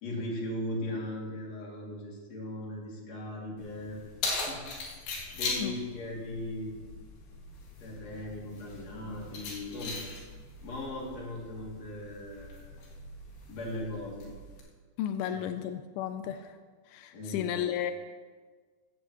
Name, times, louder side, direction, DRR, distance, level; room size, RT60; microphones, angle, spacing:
voice 1, 0.0-4.0 4.5-4.9 5.3-6.8 7.8-10.0 10.6-12.7 13.5-14.3 15.2-15.4 17.1-17.7, left 1 dB, 45° left, -3 dB, 3.2 m, -38 dB
Keys jangling, 3.6-14.6, left 3 dB, 70° left, 4.0 m, -40 dB
voice 2, 15.0-16.6 16.9-17.9, left 10 dB, 85° left, 9 dB, 2.1 m, -33 dB
16.0 x 15.0 x 3.0 m, 1.5 s
omnidirectional pair, 4.9 m